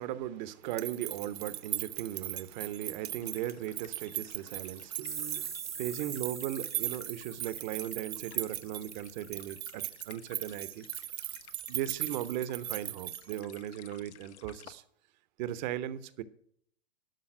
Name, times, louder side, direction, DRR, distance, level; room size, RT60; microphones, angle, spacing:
voice 1, 0.0-10.8 11.7-14.8 15.4-16.2, right 12 dB, 40° right, 0.9 m, -37 dB
sound 1, 0.6-13.7, right 13 dB, 70° right, 0.6 m, -39 dB
sound 2, 3.2-14.7, left 10 dB, 80° left, 1.0 m, -56 dB
sound 3, 5.1-9.7, right 6 dB, 10° right, 0.5 m, -44 dB
12.0 x 5.7 x 8.8 m
hypercardioid pair, 140°, 33 cm